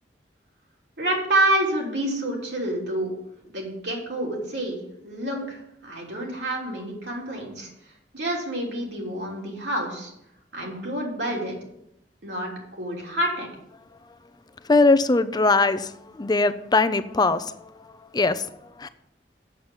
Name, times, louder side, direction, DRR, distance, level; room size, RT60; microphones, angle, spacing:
voice 1, 1.0-3.1 3.4-7.7 8.1-10.1 10.5-11.6 12.2-13.5, right 1 dB, 70° right, -2 dB, 3.4 m, -28 dB
voice 2, 14.7-15.9 16.1-17.6 18.1-18.4 18.8-18.9, left 3 dB, 25° left, 12 dB, 0.6 m, -20 dB
8.2 x 7.3 x 8.0 m, 0.79 s
head